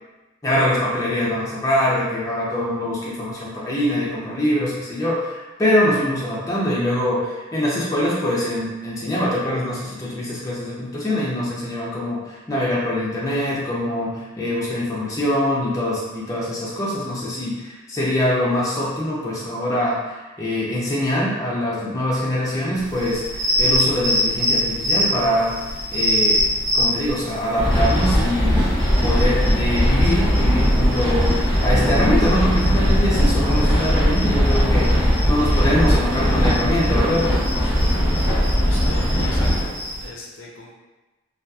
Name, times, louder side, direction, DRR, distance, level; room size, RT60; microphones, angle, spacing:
voice 1, 0.4-25.6 25.9-26.4 26.7-28.6 29.0-31.3 31.6-37.3, left 1 dB, 15° left, -6 dB, 0.4 m, -23 dB
sound 1, 22.8-40.1, equal, 40° right, 0.5 m, -27 dB
sound 2, 27.6-39.6, equal, 20° right, 1.1 m, -19 dB
voice 2, 38.5-40.7, left 2 dB, 75° left, -1 dB, 0.5 m, -39 dB
2.7 x 2.3 x 2.3 m, 1.1 s
head